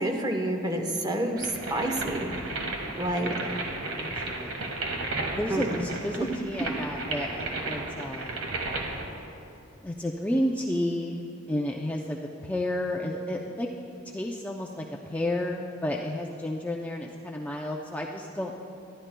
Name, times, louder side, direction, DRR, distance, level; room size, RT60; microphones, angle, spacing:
voice 1, 0.0-2.4 3.0-3.3 5.5-5.9 6.2-6.3, right 1 dB, 20° right, 3 dB, 1.0 m, -29 dB
sound 1, 1.4-9.1, right 2 dB, 75° right, 1.5 m, -34 dB
voice 2, 3.0-3.5 3.9-4.7 5.3-8.4 9.8-11.2 11.5-13.7 14.1-18.6, left 1 dB, 10° left, -1 dB, 0.5 m, -32 dB
23.0 x 12.5 x 2.2 m, 2.7 s
head